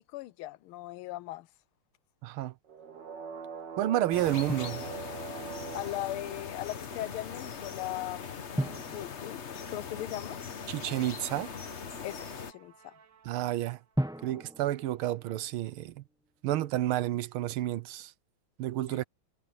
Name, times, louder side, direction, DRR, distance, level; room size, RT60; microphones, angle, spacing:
voice 1, 0.0-1.5 5.7-8.6 8.9-10.4 12.0-13.0 18.9-19.0, left 15 dB, 90° left, 1.5 m, -39 dB
voice 2, 2.2-2.5 3.8-4.9 10.7-11.5 13.2-13.8 14.2-16.0 16.4-18.1 18.6-19.0, right 14 dB, 85° right, 1.6 m, -30 dB
sound 1, 2.6-7.3 10.6-13.5, right 6 dB, 55° right, 2.1 m, -45 dB
sound 2, 4.1-12.5, left 6 dB, 40° left, 1.1 m, -41 dB
Drum, 8.6-10.4 13.9-15.9, equal, 5° right, 0.5 m, -37 dB
omnidirectional pair, 2.3 m